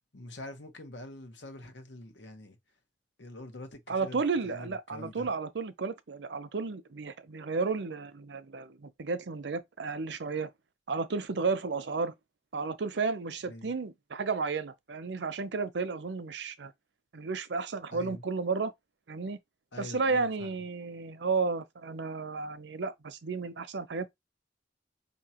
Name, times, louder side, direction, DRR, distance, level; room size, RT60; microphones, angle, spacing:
voice 1, 0.1-2.6 3.2-5.3 13.5-13.7 17.9-18.2 19.7-20.5, left 1 dB, 85° left, 1.2 m, -45 dB
voice 2, 3.9-10.5 10.9-12.1 12.5-16.7 17.1-18.7 19.1-19.4 19.8-24.1, right 4 dB, 75° right, 0.6 m, -33 dB
5.3 x 2.9 x 2.9 m
head